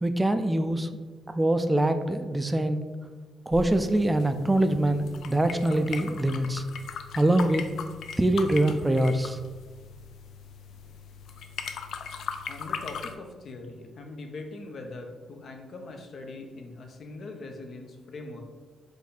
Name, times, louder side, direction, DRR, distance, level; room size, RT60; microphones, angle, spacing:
voice 1, 0.0-0.9 1.3-2.8 3.5-6.6 7.1-7.6 8.2-9.4, right 1 dB, 15° right, 8 dB, 0.4 m, -24 dB
sound 1, 3.5-13.2, left 6 dB, 75° left, 0.3 m, -39 dB
voice 2, 12.5-18.4, left 2 dB, 60° left, 3 dB, 0.8 m, -41 dB
4.9 x 2.7 x 4.1 m, 1.4 s
cardioid pair, 75°, 0 cm